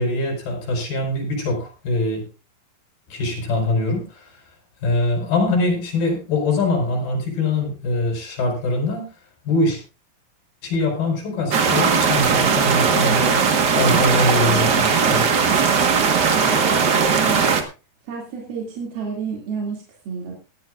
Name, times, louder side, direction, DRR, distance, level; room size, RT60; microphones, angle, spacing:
voice 1, 0.0-2.2 3.1-4.1 4.8-9.1 9.5-9.8 10.6-13.4 13.8-15.2, left 2 dB, 80° left, 1 dB, 6.6 m, -23 dB
sound 1, 11.5-17.6, right 6 dB, 65° right, 1.0 m, -18 dB
voice 2, 16.6-17.6 18.1-20.4, right 5 dB, 90° right, -1 dB, 4.4 m, -31 dB
19.0 x 13.0 x 2.4 m, 0.31 s
omnidirectional pair, 4.2 m